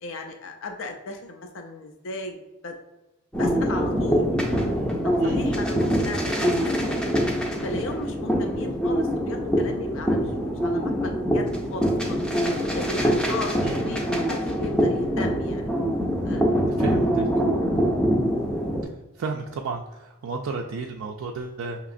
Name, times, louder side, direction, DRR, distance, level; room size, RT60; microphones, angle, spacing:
voice 1, 0.0-2.4 2.6-2.7 3.4-4.2 4.5-4.7 5.0-7.2 7.6-12.3 12.7-15.7 16.2-16.5 16.8-16.9 17.5-17.7, left 3 dB, 60° left, 4 dB, 0.4 m, -36 dB
sound 1, 3.3-18.8, equal, 5° left, 0.4 m, -24 dB
voice 2, 5.2-5.6 13.6-13.9 16.6-17.3 19.1-21.8, right 4 dB, 70° right, 1 dB, 0.3 m, -33 dB
5.6 x 2.9 x 2.5 m, 1.0 s
head